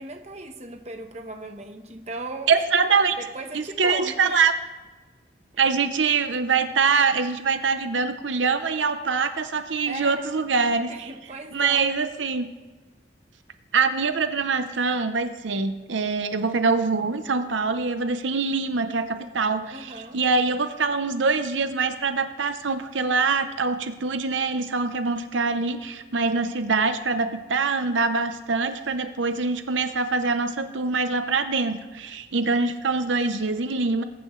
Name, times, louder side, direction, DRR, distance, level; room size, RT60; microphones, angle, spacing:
voice 1, 0.0-2.6 3.2-4.4 9.9-10.2 10.9-11.8 19.7-20.2, right 2 dB, 35° right, 5 dB, 1.1 m, -37 dB
voice 2, 2.5-3.2 3.5-4.5 5.6-11.1 11.5-12.5 13.7-34.0, right 4 dB, 90° right, 9 dB, 0.8 m, -24 dB
20.5 x 10.5 x 3.2 m, 1.2 s
head